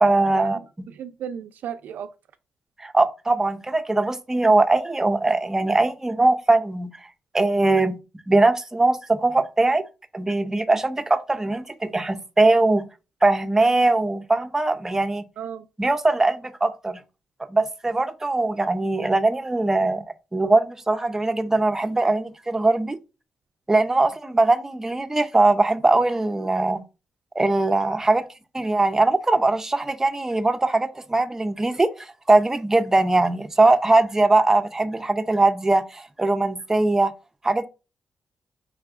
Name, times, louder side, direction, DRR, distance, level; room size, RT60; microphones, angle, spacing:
voice 1, 0.0-0.6 2.8-6.9 7.3-8.0 8.3-9.8 10.1-12.9 13.2-15.2 15.8-17.0 17.5-20.0 20.3-23.0 23.7-26.8 27.4-28.2 28.5-37.1 37.4-37.7, right 2 dB, 15° right, 0.5 m, -21 dB
voice 2, 0.9-2.1 15.4-15.7, right 8 dB, 80° right, 0.4 m, -34 dB
4.6 x 3.4 x 2.4 m
cardioid pair, 100°, 3 cm